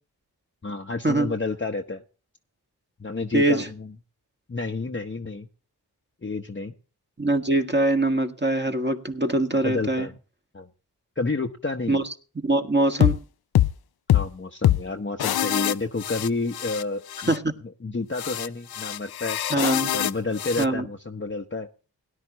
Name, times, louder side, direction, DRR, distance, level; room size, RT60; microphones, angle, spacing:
voice 1, 0.6-2.0 3.0-3.9 4.5-5.5 6.2-6.7 9.6-10.1 10.5-10.7 11.2-12.0 14.1-17.4 17.8-19.4 19.9-21.7, left 3 dB, 30° left, 3 dB, 1.0 m, -30 dB
voice 2, 3.3-3.7 7.2-10.1 11.9-12.0 12.4-13.2 17.3-17.4 19.5-19.9 20.6-20.9, right 2 dB, 25° right, 6 dB, 1.7 m, -23 dB
sound 1, 13.0-13.2 13.5-13.7 14.1-14.3 14.6-14.8 15.2-16.8 17.1-17.4 18.1-20.6, left 12 dB, 65° left, 0.5 m, -24 dB
18.0 x 10.5 x 3.0 m, 0.36 s
cardioid pair, 40°, 41 cm